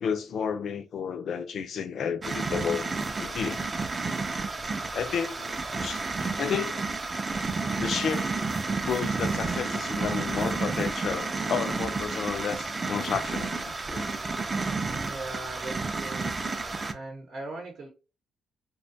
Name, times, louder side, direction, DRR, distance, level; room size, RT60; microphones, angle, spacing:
voice 1, 0.0-3.6 4.9-5.5 5.8-6.0 6.4-6.8 7.8-8.3 8.8-14.1, left 7 dB, 60° left, 0.3 m, -31 dB
sound 1, 2.2-16.9, right 3 dB, 30° right, 0.3 m, -31 dB
voice 2, 14.9-16.3 16.9-17.9, right 2 dB, 65° right, 0.7 m, -39 dB
2.6 x 2.2 x 2.5 m
cardioid pair, 90°, 0 cm